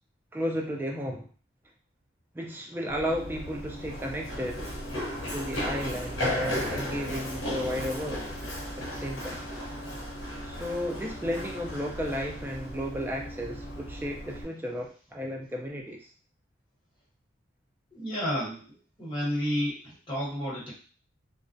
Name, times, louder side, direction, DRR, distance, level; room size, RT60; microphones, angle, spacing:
voice 1, 0.3-1.3 2.3-4.7 5.3-8.3 8.8-9.4 10.4-16.1, equal, 10° right, 0 dB, 0.3 m, -33 dB
Run, 2.9-14.4, equal, 75° left, 0.8 m, -35 dB
voice 2, 17.9-20.7, equal, 25° left, -8 dB, 1.1 m, -31 dB
2.3 x 2.1 x 2.5 m, 0.39 s
head